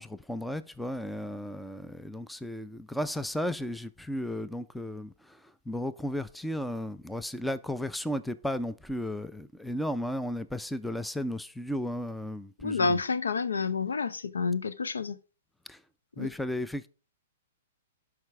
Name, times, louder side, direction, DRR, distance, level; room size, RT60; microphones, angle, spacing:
voice 1, 0.0-5.4 5.7-13.0 15.7-15.8 16.2-16.9, left 1 dB, 5° left, 0.5 m, -34 dB
voice 2, 12.6-15.2 16.2-16.3, left 4 dB, 75° left, 0.6 m, -29 dB
12.0 x 4.8 x 3.4 m
figure-of-eight pair, 110°, 0 cm